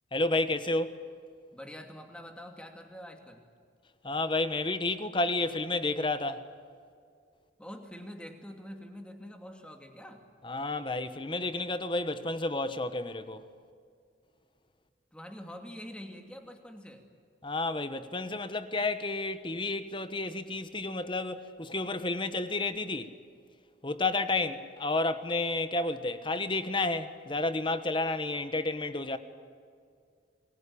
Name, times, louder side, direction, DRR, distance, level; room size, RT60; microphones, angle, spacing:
voice 1, 0.1-1.0 4.0-6.4 10.4-13.4 17.4-23.1 23.8-29.2, left 2 dB, 25° left, 1.2 m, -31 dB
voice 2, 1.5-3.4 7.6-10.2 15.1-17.1, equal, 5° left, 2.5 m, -45 dB
28.0 x 20.5 x 8.7 m
head